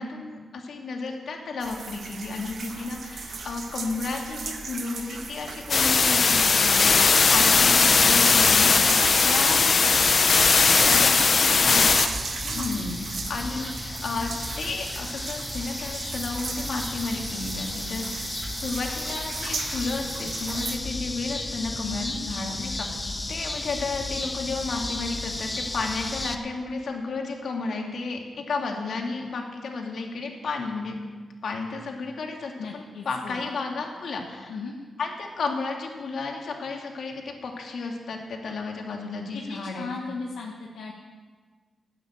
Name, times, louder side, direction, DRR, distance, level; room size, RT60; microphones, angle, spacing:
voice 1, 0.0-9.2 9.7-9.8 10.7-11.1 11.6-12.1 12.4-22.9 23.3-31.0 31.4-34.5 35.0-39.9, left 4 dB, 70° left, 2 dB, 2.3 m, -33 dB
sound 1, 1.6-20.8, right 4 dB, 65° right, 1.5 m, -36 dB
sound 2, 5.7-12.1, left 4 dB, 55° left, 0.8 m, -19 dB
voice 2, 9.0-10.0 10.8-11.1 11.4-11.7 12.0-12.1 12.5-12.8 21.8-22.2 32.6-33.5 34.5-34.7 39.3-40.9, left 4 dB, 90° left, -2 dB, 1.3 m, -35 dB
sound 3, 11.6-26.3, left 2 dB, 20° left, 1.1 m, -34 dB
12.5 x 8.9 x 8.8 m, 1.5 s
cardioid pair, 65°, 0 cm